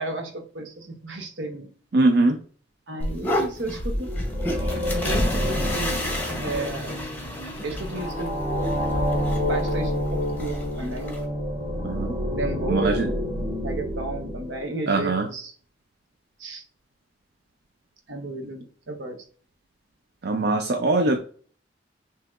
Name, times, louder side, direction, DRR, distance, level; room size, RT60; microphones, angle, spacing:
voice 1, 0.0-1.7 2.9-4.1 4.9-7.0 7.6-8.3 9.4-11.2 12.3-13.2 13.6-15.5 16.4-16.6 18.1-19.2, right 2 dB, 85° right, 5 dB, 0.9 m, -33 dB
voice 2, 1.9-2.4 11.8-12.1 12.7-13.1 14.9-15.3 20.2-21.2, right 2 dB, 60° right, 4 dB, 0.5 m, -21 dB
sound 1, 3.0-11.2, left 1 dB, 10° left, 0.8 m, -30 dB
sound 2, 3.8-14.9, equal, 30° right, 1.1 m, -28 dB
5.6 x 2.8 x 2.4 m, 0.43 s
head